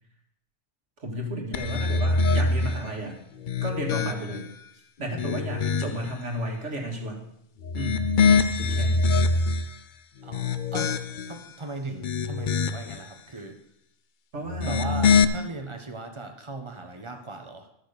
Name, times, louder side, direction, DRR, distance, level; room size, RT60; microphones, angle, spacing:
voice 1, 1.0-3.2 3.6-4.5 5.0-7.2 7.7-9.1 13.3-13.4 14.3-15.0, right 1 dB, 65° right, 1 dB, 2.3 m, -33 dB
sound 1, 1.5-2.8 3.4-4.5 5.0-6.1 7.6-9.7 10.2-11.4 11.9-13.0 14.5-15.2, left 4 dB, 55° left, 0.6 m, -24 dB
voice 2, 10.2-13.6 14.6-17.7, right 2 dB, 25° right, 5 dB, 1.2 m, -38 dB
12.5 x 6.4 x 6.6 m, 0.77 s
omnidirectional pair, 1.3 m